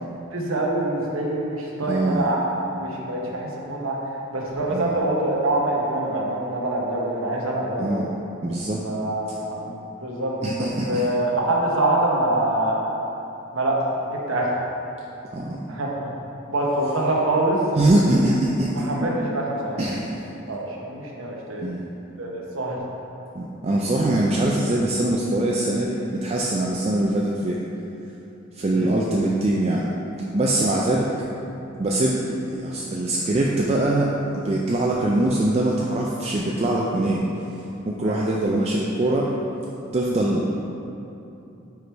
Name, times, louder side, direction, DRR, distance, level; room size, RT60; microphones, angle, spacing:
voice 1, 0.3-2.4 2.8-8.0 8.8-10.3 10.8-12.9 13.5-14.5 15.7-16.1 16.5-17.6 18.7-19.8 20.5-21.7 22.2-22.8 28.7-28.9 30.6-30.9 38.0-38.2, right 1 dB, 90° right, -2 dB, 1.0 m, -25 dB
voice 2, 1.9-2.3 4.7-5.0 7.8-8.1 8.4-8.8 10.4-11.1 15.3-15.7 17.8-19.1 19.8-20.2 21.6-21.8 23.3-27.6 28.5-29.9 30.3-31.1 31.8-37.2 37.9-39.3 39.9-40.6, right 1 dB, 30° right, -3 dB, 0.4 m, -23 dB
5.0 x 4.7 x 4.5 m, 2.9 s
head